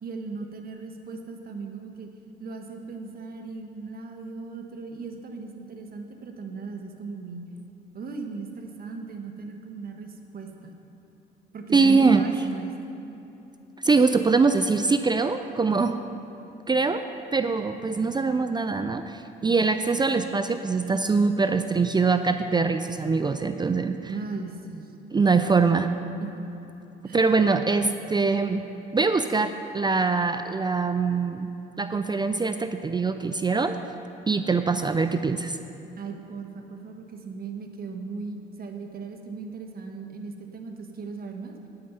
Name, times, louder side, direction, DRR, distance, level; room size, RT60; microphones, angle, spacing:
voice 1, 0.0-2.1 2.4-7.5 7.9-10.7 11.5-12.8 24.1-24.9 25.4-25.7 26.2-26.5 27.0-27.3 36.0-41.5, right 4 dB, 50° right, 4 dB, 1.2 m, -37 dB
voice 2, 11.7-12.2 13.8-16.0 16.7-17.0 17.3-24.0 25.1-25.9 27.1-28.6 28.9-31.5 31.8-33.8 34.3-35.6, right 4 dB, 20° right, 8 dB, 0.4 m, -23 dB
9.3 x 8.7 x 5.6 m, 3.0 s
cardioid pair, 90°, 20 cm